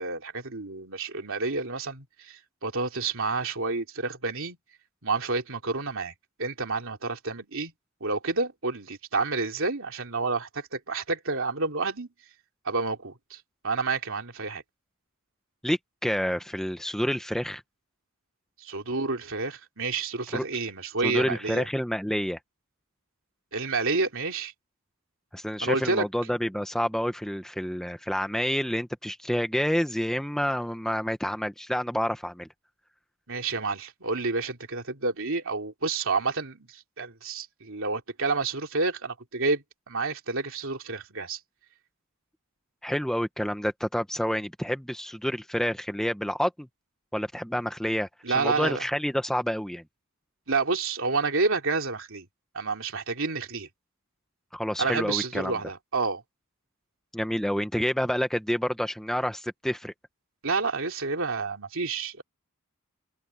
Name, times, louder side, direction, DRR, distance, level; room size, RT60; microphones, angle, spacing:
voice 1, 0.0-4.6 5.0-6.1 6.4-7.7 8.0-12.1 12.6-14.6 18.6-21.7 23.5-24.5 25.6-26.1 33.3-41.4 48.2-48.8 50.5-52.3 52.5-53.7 54.8-56.2 60.4-62.2, right 3 dB, 60° right, 3.3 m, -29 dB
voice 2, 15.6-17.6 20.3-20.4 21.0-22.4 25.3-32.5 42.8-46.7 47.1-48.1 48.3-49.8 54.5-55.5 57.1-59.9, equal, ahead, 1.0 m, -28 dB
open air
head